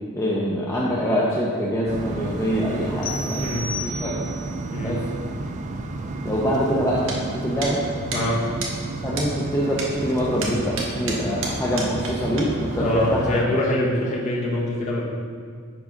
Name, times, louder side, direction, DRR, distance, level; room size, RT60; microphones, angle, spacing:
voice 1, 0.1-4.2 4.8-5.0 6.2-7.8 9.0-13.4, equal, 15° left, -6 dB, 0.6 m, -25 dB
sound 1, 1.9-13.4, right 2 dB, 35° right, 0.3 m, -32 dB
sound 2, 3.0-4.5, left 2 dB, 70° left, 0.9 m, -33 dB
sound 3, 7.1-7.2 7.6-7.7 8.1-8.2 8.6-8.7 9.2-9.3 9.8-9.9 10.4-12.1 12.4-12.5, right 4 dB, 60° right, 0.9 m, -30 dB
voice 2, 12.8-15.1, left 1 dB, 30° left, -4 dB, 1.1 m, -24 dB
4.8 x 4.8 x 5.2 m, 2.1 s
head